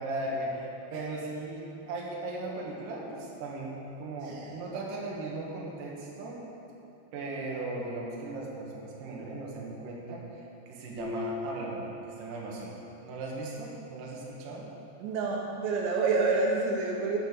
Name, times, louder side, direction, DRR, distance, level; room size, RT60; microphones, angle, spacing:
voice 1, 0.0-6.4 7.1-12.7 13.0-14.7, right 2 dB, 60° right, -3 dB, 2.7 m, -37 dB
voice 2, 4.2-4.5 15.0-17.2, right 3 dB, 80° right, -1 dB, 3.3 m, -28 dB
sound 1, 11.0-12.7, left 4 dB, 10° right, 1.2 m, -40 dB
10.5 x 7.8 x 6.8 m, 2.8 s
omnidirectional pair, 5.3 m